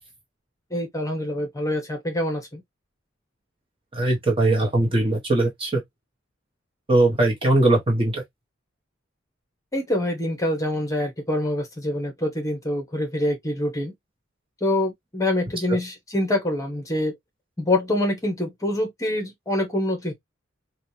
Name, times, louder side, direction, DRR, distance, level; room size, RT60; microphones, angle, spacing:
voice 1, 0.7-2.6 9.7-13.9 14.6-17.1 17.6-20.1, left 1 dB, 15° left, 1.3 m, -25 dB
voice 2, 3.9-5.8 6.9-8.2, right 2 dB, 25° right, 1.2 m, -20 dB
4.9 x 2.5 x 2.7 m
head